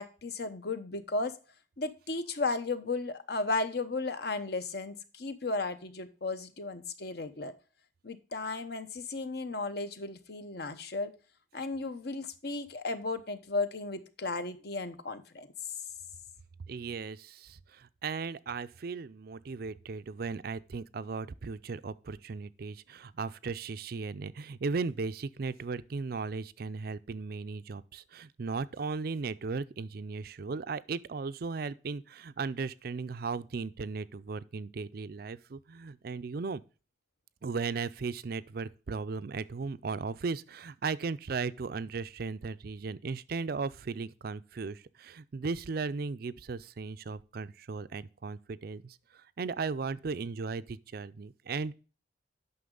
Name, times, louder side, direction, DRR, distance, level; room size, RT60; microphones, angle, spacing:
voice 1, 0.0-1.3 1.8-7.5 8.0-11.1 11.5-15.5, left 3 dB, 60° left, 0.9 m, -34 dB
voice 2, 16.7-36.6 37.4-51.7, right 4 dB, 55° right, 0.4 m, -36 dB
9.3 x 6.1 x 3.8 m
head